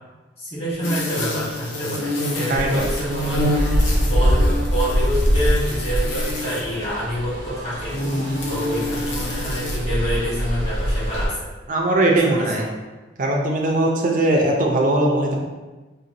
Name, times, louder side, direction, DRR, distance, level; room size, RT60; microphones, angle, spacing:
voice 1, 0.4-3.5 4.1-7.9 8.5-11.3 12.3-12.6, equal, 30° left, -8 dB, 1.1 m, -27 dB
sound 1, 0.8-6.8 7.9-9.8, left 1 dB, 85° left, 0.6 m, -28 dB
voice 2, 2.5-2.8 11.7-12.7 13.2-15.4, right 1 dB, 45° right, 0 dB, 0.4 m, -19 dB
sound 2, 2.5-11.3, equal, 85° right, 0.8 m, -23 dB
3.9 x 2.1 x 2.6 m, 1.2 s
head